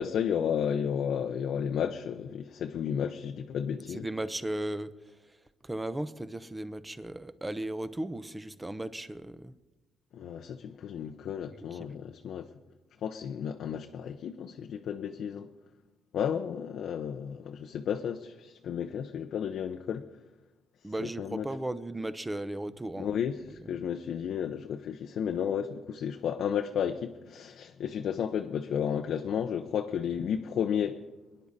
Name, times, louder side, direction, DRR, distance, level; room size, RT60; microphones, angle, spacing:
voice 1, 0.0-4.1 10.1-12.5 13.0-15.5 16.1-20.1 21.0-21.4 23.0-31.1, left 8 dB, 70° left, 5 dB, 0.7 m, -32 dB
voice 2, 3.9-9.5 11.6-11.9 20.8-23.1 23.5-23.8, right 1 dB, 15° right, 13 dB, 0.8 m, -36 dB
22.5 x 10.5 x 4.1 m, 1.1 s
cardioid pair, 90°, 0 cm